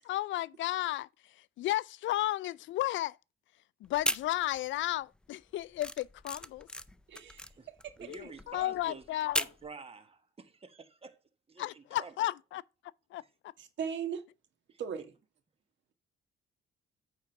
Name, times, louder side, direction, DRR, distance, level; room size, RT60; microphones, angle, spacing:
voice 1, 0.0-1.1 1.6-3.2 3.8-6.7 8.1-9.4 11.6-12.6 13.1-13.2, left 15 dB, 70° left, 0.4 m, -33 dB
sound 1, 3.9-4.8 5.1-9.7, left 1 dB, 5° left, 0.5 m, -36 dB
voice 2, 7.1-7.5 7.8-7.9 13.6-14.2 14.8-15.1, right 7 dB, 70° right, 1.6 m, -37 dB
voice 3, 8.0-9.0 9.4-11.1 11.5-12.1 13.2-13.3 14.7-14.8, right 4 dB, 30° right, 1.3 m, -49 dB
8.8 x 3.8 x 5.8 m
cardioid pair, 90°, 20 cm